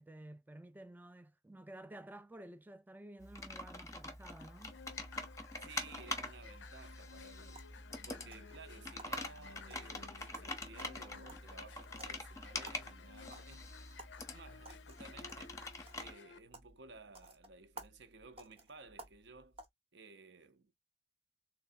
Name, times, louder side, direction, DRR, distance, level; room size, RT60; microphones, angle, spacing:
voice 1, 0.0-4.8, right 1 dB, 10° right, 0.3 m, -52 dB
Computer keyboard, 3.2-16.1, left 2 dB, 15° left, 0.7 m, -45 dB
sound 1, 4.4-16.4, left 6 dB, 70° left, 0.5 m, -56 dB
sound 2, 4.6-19.7, right 2 dB, 30° right, 0.8 m, -59 dB
voice 2, 5.6-7.7 8.1-13.6 14.3-15.6 15.9-19.6 19.9-20.7, right 4 dB, 65° right, 0.7 m, -56 dB
3.5 x 3.3 x 2.4 m
head